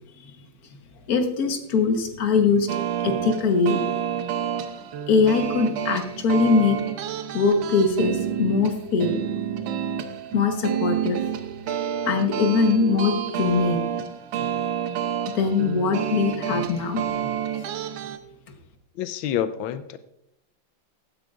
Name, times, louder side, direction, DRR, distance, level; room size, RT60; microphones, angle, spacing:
voice 1, 1.1-2.7 3.0-3.8 5.1-6.8 7.3-9.2 10.3-11.2 12.0-13.9 15.3-17.3, left 4 dB, 55° left, 5 dB, 1.6 m, -22 dB
sound 1, 2.7-18.2, right 9 dB, 90° right, 1.6 m, -29 dB
voice 2, 19.0-20.0, left 10 dB, 90° left, 12 dB, 1.4 m, -27 dB
15.5 x 9.4 x 2.5 m, 0.77 s
omnidirectional pair, 2.1 m